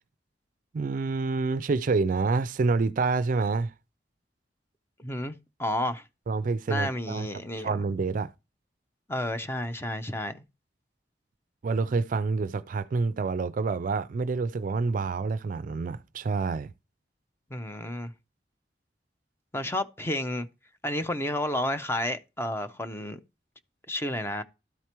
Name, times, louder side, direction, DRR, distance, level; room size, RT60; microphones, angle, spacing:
voice 1, 0.7-3.7 6.3-7.3 7.6-8.3 11.6-16.7, right 4 dB, 50° right, 0.4 m, -27 dB
voice 2, 5.0-5.3 5.6-6.0 6.7-7.8 9.1-10.4 17.5-18.1 19.5-20.5 20.8-23.2 23.9-24.4, left 1 dB, 15° left, 0.6 m, -31 dB
12.5 x 4.6 x 2.9 m
head